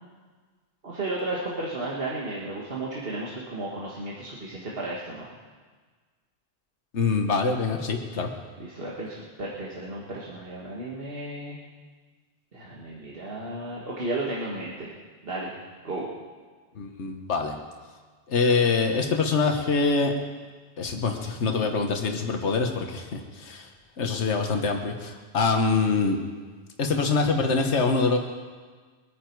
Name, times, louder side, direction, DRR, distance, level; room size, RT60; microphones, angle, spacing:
voice 1, 0.8-5.3 8.6-11.6 12.5-14.9 15.2-15.5 15.8-16.1, right 2 dB, 55° right, -5 dB, 1.9 m, -33 dB
voice 2, 6.9-8.3 16.8-17.6 18.3-20.1 20.8-23.7 24.0-26.2 26.8-28.2, left 4 dB, 90° left, 3 dB, 1.4 m, -24 dB
23.0 x 9.4 x 4.6 m, 1.5 s
omnidirectional pair, 1.1 m